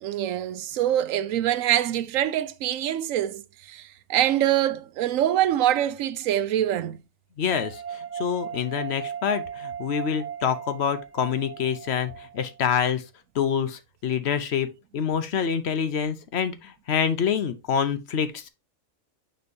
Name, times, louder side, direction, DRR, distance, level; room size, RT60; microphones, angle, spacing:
voice 1, 0.0-7.0, right 12 dB, 80° right, 1.0 m, -24 dB
voice 2, 7.4-13.0 13.3-14.7 14.9-18.5, left 7 dB, 60° left, 0.9 m, -26 dB
sound 1, 7.5-12.7, right 8 dB, 20° right, 0.4 m, -37 dB
9.5 x 4.4 x 2.7 m
omnidirectional pair, 1.4 m